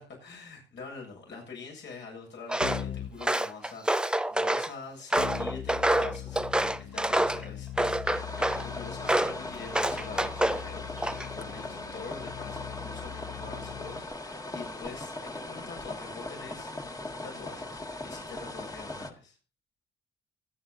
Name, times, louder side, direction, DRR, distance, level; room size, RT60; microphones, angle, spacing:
voice 1, 0.0-8.0 8.6-19.4, left 4 dB, 65° left, 1 dB, 7.6 m, -45 dB
Walk footsteps, 2.5-2.8 3.2-4.7 5.1-7.4 7.8-8.6 9.1-9.4 9.7-10.6 11.0-11.4, right 1 dB, 5° right, 0.6 m, -27 dB
Keyboard (musical), 2.6-3.2 5.2-14.0, left 11 dB, 80° left, 1.4 m, -41 dB
sound 1, 8.0-19.1, left 2 dB, 15° left, 1.7 m, -39 dB
24.0 x 9.8 x 2.6 m, 0.30 s
cardioid pair, 90°, 20 cm